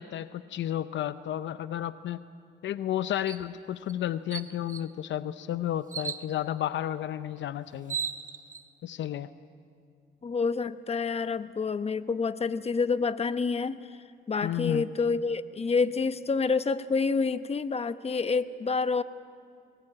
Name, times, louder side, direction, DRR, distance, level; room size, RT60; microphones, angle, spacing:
voice 1, 0.0-2.2 2.6-8.0 8.8-9.3 14.4-14.8, left 11 dB, 70° left, 13 dB, 0.6 m, -32 dB
sound 1, 3.3-3.5 3.9-4.0 4.3-4.9 5.9-6.3 7.4-7.5 7.7-8.6, right 6 dB, 40° right, 1.1 m, -35 dB
voice 2, 10.2-14.0 14.3-19.0, left 4 dB, 30° left, 12 dB, 1.0 m, -28 dB
23.0 x 20.0 x 8.7 m, 2.4 s
cardioid pair, 90°, 20 cm